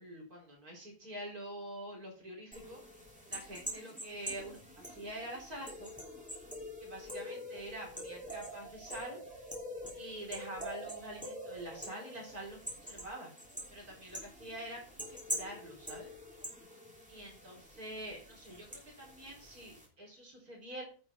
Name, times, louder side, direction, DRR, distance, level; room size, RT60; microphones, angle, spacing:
voice 1, 0.0-2.8 3.3-5.9 6.8-9.2 9.9-13.3 13.7-16.1 17.1-20.8, right 1 dB, 65° right, -2 dB, 4.9 m, -46 dB
sound 1, 2.5-19.9, equal, 5° right, 3.0 m, -45 dB
10.5 x 6.0 x 6.0 m, 0.39 s
omnidirectional pair, 1.7 m